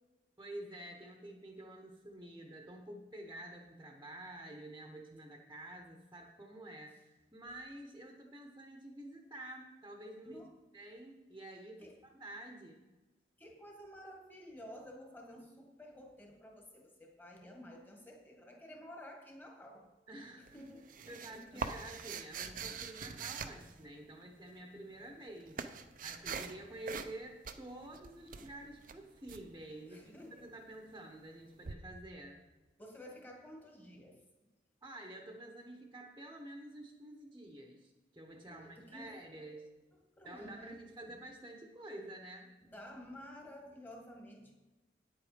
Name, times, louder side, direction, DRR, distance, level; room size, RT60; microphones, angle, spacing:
voice 1, 0.4-10.4 10.7-12.8 20.1-20.6 21.1-32.4 34.8-39.7 40.2-42.5, right 1 dB, 15° right, 2 dB, 1.0 m, -49 dB
voice 2, 13.4-19.9 20.3-21.7 29.9-30.5 32.8-34.2 38.5-39.6 40.2-41.2 42.7-44.5, equal, 10° left, 1 dB, 1.6 m, -52 dB
sound 1, 20.5-24.3 25.0-26.6 26.8-27.2 27.4-29.4 31.6-31.7, right 5 dB, 50° right, 0.6 m, -43 dB
9.3 x 8.1 x 5.1 m, 1.1 s
head